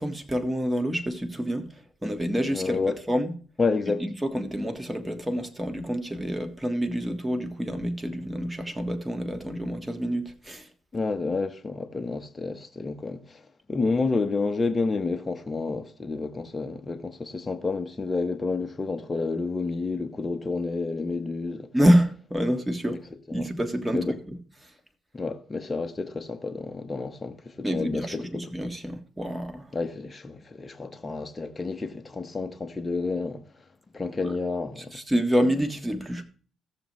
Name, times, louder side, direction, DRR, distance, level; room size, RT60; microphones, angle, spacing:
voice 1, 0.0-1.7 2.0-3.3 4.0-10.7 21.7-23.0 23.3-24.3 27.6-29.7 34.2-34.3 34.9-36.2, equal, 10° right, 1.5 m, -27 dB
voice 2, 2.5-3.0 3.6-4.0 10.9-13.4 13.7-21.7 23.3-23.5 23.9-24.2 25.1-28.5 29.7-33.4 33.9-34.9, left 3 dB, 25° left, 0.9 m, -30 dB
15.5 x 6.9 x 3.1 m
cardioid pair, 90°, 0 cm